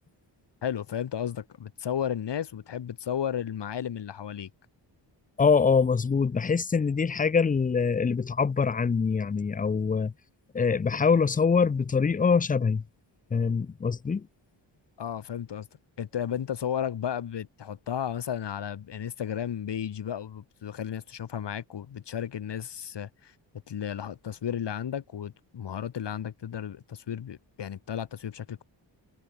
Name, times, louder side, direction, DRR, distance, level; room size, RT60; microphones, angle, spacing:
voice 1, 0.6-4.5 15.0-15.7 16.0-23.3 23.7-28.6, left 9 dB, 65° left, 3.0 m, -33 dB
voice 2, 5.4-10.1 10.5-12.8 13.3-14.3, left 5 dB, 20° left, 0.4 m, -24 dB
wide cardioid pair, 170°, 45 cm